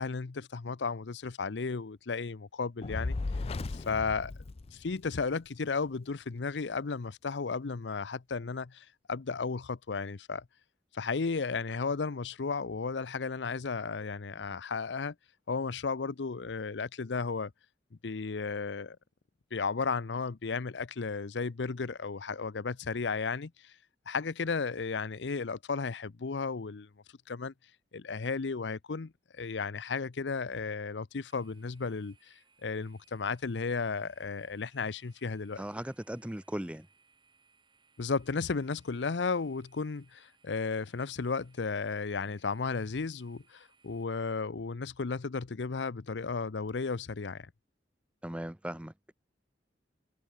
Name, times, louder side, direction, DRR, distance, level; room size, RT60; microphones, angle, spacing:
voice 1, 0.0-3.2 3.7-4.3 4.7-10.4 10.9-15.1 15.5-17.5 18.0-19.0 19.5-23.7 24.1-26.9 27.3-27.5 27.9-32.3 32.6-35.6 38.0-47.5, left 4 dB, 85° left, 0.7 m, -34 dB
Fire, 2.8-5.3, left 3 dB, 35° left, 0.4 m, -36 dB
sound 1, 31.3-44.0, right 5 dB, 25° right, 3.6 m, -68 dB
voice 2, 35.6-36.9 48.2-49.1, right 1 dB, 5° right, 0.7 m, -38 dB
head